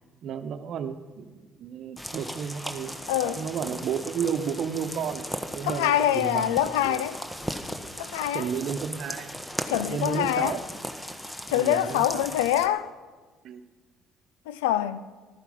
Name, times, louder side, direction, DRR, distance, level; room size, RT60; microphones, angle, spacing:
voice 1, 0.2-5.3 5.5-6.6 6.8-7.0 8.3-9.4 9.9-10.6 11.5-12.2 13.4-13.6, right 7 dB, 60° right, 1.0 m, -32 dB
sound 1, 2.0-12.7, equal, 10° left, 1.4 m, -37 dB
voice 2, 3.1-3.4 5.6-7.2 8.0-8.5 9.7-10.6 11.5-12.9 14.5-15.1, left 12 dB, 80° left, 0.5 m, -25 dB
14.5 x 13.0 x 5.5 m
hypercardioid pair, 55°, 0 cm